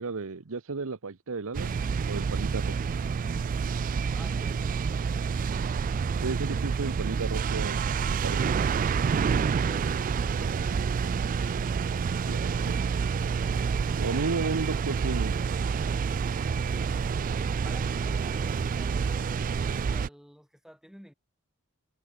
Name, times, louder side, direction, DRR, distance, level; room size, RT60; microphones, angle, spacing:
voice 1, 0.0-1.8 2.1-2.7 6.2-8.4 12.3-12.7 14.0-15.4, right 4 dB, 65° right, 0.9 m, -33 dB
sound 1, 1.5-20.1, right 5 dB, 40° right, 0.3 m, -28 dB
voice 2, 4.1-5.1 16.7-21.1, equal, ahead, 7.5 m, -51 dB
head